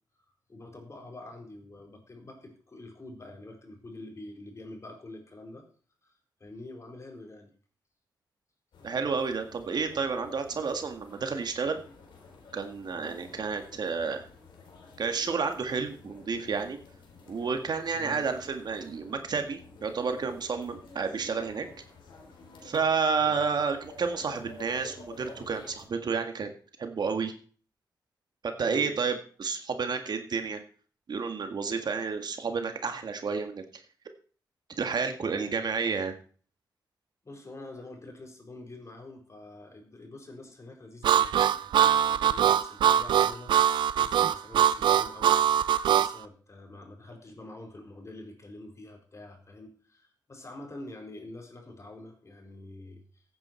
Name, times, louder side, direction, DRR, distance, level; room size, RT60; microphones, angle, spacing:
voice 1, 0.5-5.7 6.0-7.5 12.9-13.2 17.9-18.2 23.2-23.5 28.6-29.0 35.2-35.6 37.2-45.4 45.9-53.2, left 2 dB, 40° left, 3 dB, 4.3 m, -46 dB
sound 1, 8.7-25.9, left 3 dB, 85° left, 3.7 m, -51 dB
voice 2, 8.8-11.8 12.5-14.2 15.0-16.8 17.3-21.7 22.6-26.5 26.8-27.3 28.4-30.6 31.1-33.6 34.8-36.1, right 5 dB, 65° right, 6 dB, 1.8 m, -30 dB
Harmonica, 41.0-46.1, right 9 dB, 85° right, 0.5 m, -22 dB
15.5 x 8.8 x 4.5 m, 0.42 s
cardioid pair, 65°, 8 cm